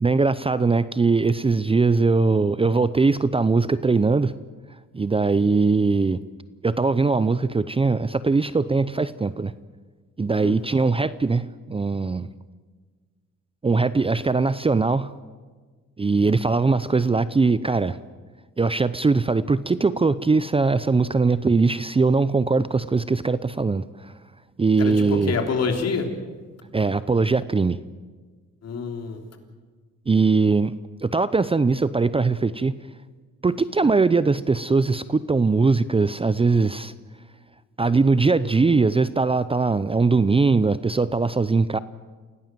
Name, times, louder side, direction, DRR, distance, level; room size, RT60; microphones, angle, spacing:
voice 1, 0.0-4.3 4.9-6.2 6.6-9.5 10.2-12.3 13.6-15.1 16.0-18.0 18.6-24.1 24.6-25.4 26.7-27.8 30.1-30.7 31.0-32.8 33.4-36.9 37.8-41.8, right 4 dB, 20° right, 15 dB, 0.6 m, -21 dB
voice 2, 24.8-26.1 28.6-29.2, left 5 dB, 55° left, 4 dB, 3.5 m, -26 dB
27.5 x 17.5 x 7.6 m, 1.4 s
cardioid pair, 90°, 30 cm